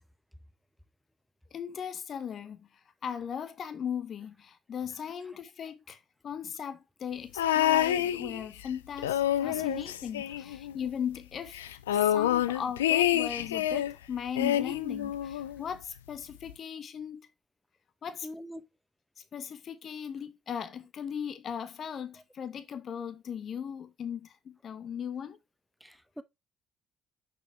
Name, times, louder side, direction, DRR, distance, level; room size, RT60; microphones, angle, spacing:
voice 1, 1.5-2.7 3.0-17.3 18.0-18.3 19.3-25.4, left 8 dB, 50° left, 0.9 m, -38 dB
sound 1, 7.4-8.7 9.0-10.9 11.2-11.3 11.5-13.9 14.4-15.6 16.5-16.6, left 12 dB, 85° left, 0.4 m, -28 dB
voice 2, 18.2-18.6 25.8-26.2, equal, ahead, 1.0 m, -43 dB
6.3 x 5.6 x 3.4 m
hypercardioid pair, 50°, 0 cm